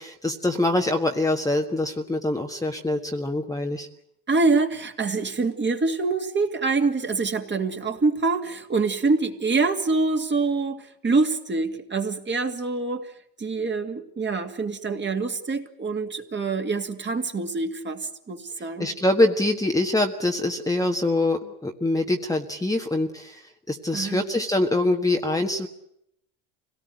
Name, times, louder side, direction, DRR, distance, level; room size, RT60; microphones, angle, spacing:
voice 1, 0.0-3.9 18.8-25.7, left 2 dB, 5° left, 3 dB, 1.5 m, -24 dB
voice 2, 4.3-18.9 23.9-24.2, right 3 dB, 25° right, 5 dB, 2.4 m, -25 dB
25.0 x 18.0 x 9.4 m, 0.75 s
supercardioid pair, 105°, 45 cm